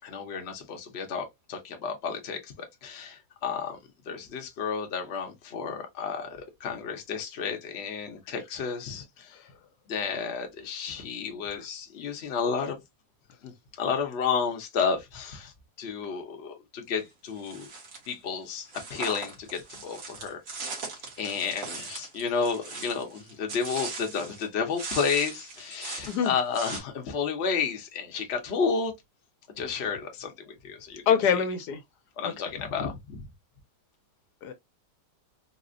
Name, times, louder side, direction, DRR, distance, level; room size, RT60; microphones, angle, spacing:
voice 1, 0.0-3.8 4.1-9.4 9.9-12.8 13.4-13.5 13.8-15.5 15.8-17.7 18.1-20.4 21.2-28.9 29.6-31.4 32.2-33.3, left 6 dB, 50° left, 0.9 m, -31 dB
sound 1, 17.4-18.1 18.7-24.5 24.7-26.8, right 4 dB, 60° right, 1.6 m, -39 dB
voice 2, 31.1-31.8 32.2-32.3 34.4-34.5, left 7 dB, 80° left, 1.2 m, -24 dB
4.1 x 2.1 x 2.5 m
omnidirectional pair, 1.7 m